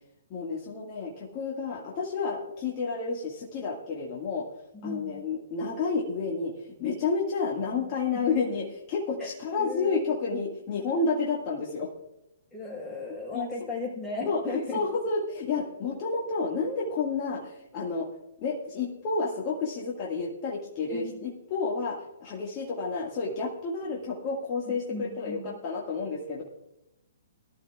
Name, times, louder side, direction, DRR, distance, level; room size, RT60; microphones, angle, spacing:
voice 1, 0.3-4.5 4.8-6.5 6.8-11.9 13.3-13.4 14.3-18.1 18.4-26.4, left 4 dB, 35° left, -2 dB, 1.7 m, -30 dB
voice 2, 4.8-5.2 7.8-7.9 9.2-10.1 12.5-14.8 20.9-21.3 24.9-25.6, left 3 dB, 10° left, -4 dB, 4.7 m, -36 dB
19.0 x 12.0 x 2.4 m, 0.86 s
figure-of-eight pair, 125°, 0 cm